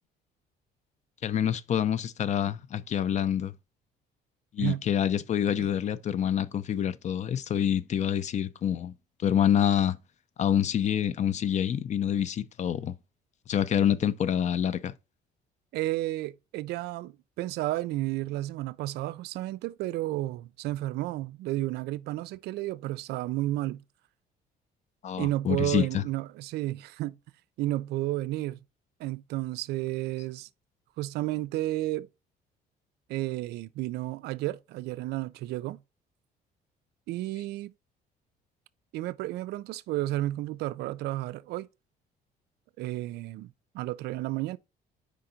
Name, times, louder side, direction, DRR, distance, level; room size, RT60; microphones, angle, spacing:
voice 1, 1.2-3.5 4.5-8.9 9.2-10.0 10.4-12.9 13.5-14.9 25.0-26.0, left 9 dB, 45° left, 0.6 m, -27 dB
voice 2, 15.7-23.8 25.2-27.1 27.6-28.6 29.0-30.5 31.0-32.1 33.1-35.8 37.1-37.7 38.9-41.7 42.8-44.6, right 16 dB, 80° right, 0.4 m, -32 dB
5.1 x 3.8 x 5.6 m
cardioid pair, 110°, 17 cm